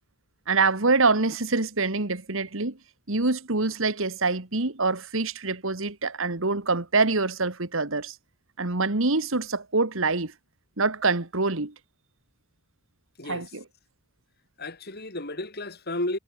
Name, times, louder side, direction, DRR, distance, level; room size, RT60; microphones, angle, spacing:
voice 1, 0.5-2.8 3.1-8.2 8.6-10.3 10.8-11.7 13.2-13.6, right 3 dB, 60° right, 1.9 m, -25 dB
voice 2, 13.2-13.5 14.6-16.2, left 1 dB, 45° left, 5.1 m, -32 dB
head